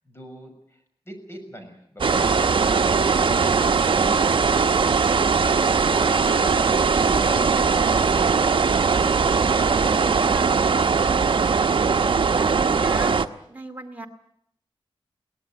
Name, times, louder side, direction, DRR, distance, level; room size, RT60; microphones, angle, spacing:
voice 1, 0.0-2.8 3.1-3.9 4.4-5.4 5.9-9.0, equal, 25° left, 5 dB, 6.5 m, -42 dB
sound 1, 2.0-13.3, right 5 dB, 60° right, 1.0 m, -20 dB
voice 2, 9.3-10.7 11.5-13.1 13.5-14.1, right 2 dB, 15° right, 2 dB, 2.5 m, -38 dB
23.0 x 18.5 x 9.0 m, 0.72 s
wide cardioid pair, 105°, 10 cm